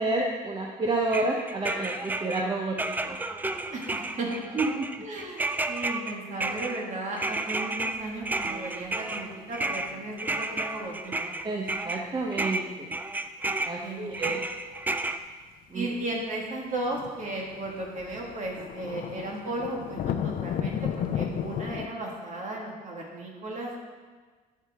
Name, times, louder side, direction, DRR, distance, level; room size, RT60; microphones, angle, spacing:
voice 1, 0.0-3.2 4.5-4.9 11.4-13.0 13.6-14.4 15.7-15.9, right 2 dB, 25° right, -1 dB, 0.8 m, -29 dB
sound 1, 1.1-2.5 2.8-12.0 12.3-15.2, right 2 dB, 10° right, 0.3 m, -32 dB
voice 2, 3.7-4.6 5.0-11.3 13.8-14.4 15.7-23.8, right 2 dB, 45° right, -1 dB, 2.0 m, -35 dB
sound 2, 7.9-8.5 8.8-9.2 9.6-9.8 11.4-11.5 11.8-12.2 14.2-14.3 14.6-14.7 15.0-15.1 15.3-15.4 16.9-21.9, left 9 dB, 55° left, 0.5 m, -34 dB
11.5 x 4.7 x 3.6 m, 1.4 s
cardioid pair, 110°, 17 cm